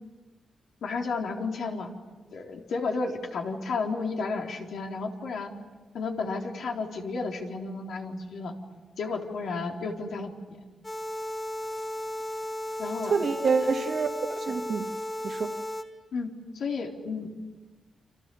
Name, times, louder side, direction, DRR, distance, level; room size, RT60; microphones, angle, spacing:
voice 1, 0.8-1.9 2.3-5.5 5.9-8.5 9.0-10.6 12.8-13.1 14.7-14.8 16.1-16.3 16.5-17.3, left 4 dB, 75° left, 3.9 m, -32 dB
sound 1, 10.8-15.8, left 1 dB, 20° left, 2.8 m, -34 dB
voice 2, 13.0-14.9 15.2-15.5, right 5 dB, 55° right, 2.0 m, -27 dB
30.0 x 26.5 x 7.1 m
wide cardioid pair, 130°, 0 cm